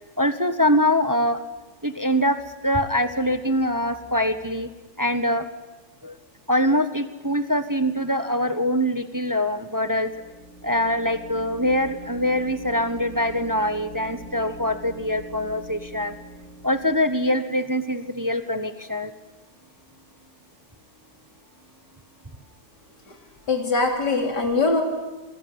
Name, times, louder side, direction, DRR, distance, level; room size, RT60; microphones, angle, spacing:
voice 1, 0.2-1.4 1.8-4.7 5.0-5.5 6.0-6.2 6.5-10.1 10.6-16.1 16.6-19.1, left 1 dB, 15° right, 10 dB, 1.0 m, -23 dB
sound 1, 9.8-17.5, right 1 dB, 55° left, 4.5 m, -43 dB
voice 2, 23.5-24.8, left 3 dB, 80° left, 3 dB, 3.8 m, -22 dB
27.5 x 21.5 x 9.8 m, 1.2 s
omnidirectional pair, 1.8 m